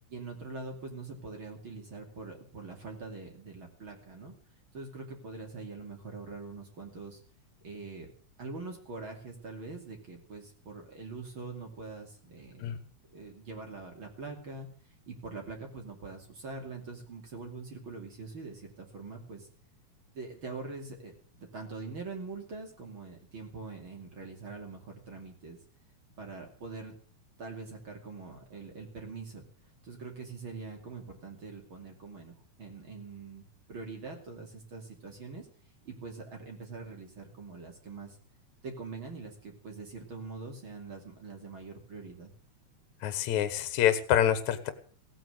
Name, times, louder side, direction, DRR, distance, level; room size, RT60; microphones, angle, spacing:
voice 1, 0.1-4.3 4.7-7.2 7.6-8.1 8.4-19.5 20.1-25.6 26.2-26.9 27.4-29.5 29.8-35.5 35.8-38.2 38.6-42.3, right 4 dB, 40° right, 2 dB, 3.2 m, -43 dB
voice 2, 43.0-44.7, left 10 dB, 65° left, 11 dB, 2.6 m, -26 dB
17.0 x 9.1 x 7.9 m, 0.43 s
omnidirectional pair, 3.7 m